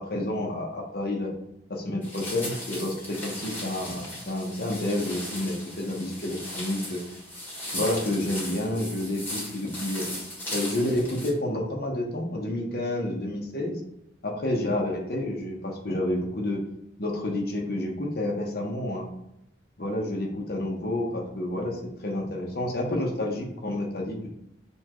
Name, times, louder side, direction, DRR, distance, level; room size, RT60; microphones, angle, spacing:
voice 1, 0.0-1.3 1.7-7.0 7.7-10.1 10.5-13.8 14.2-16.6 17.0-19.1 19.8-24.3, left 1 dB, 60° left, 0 dB, 0.9 m, -29 dB
sound 1, 2.0-11.3, left 1 dB, 10° left, 1.4 m, -37 dB
6.8 x 2.3 x 2.9 m, 0.84 s
head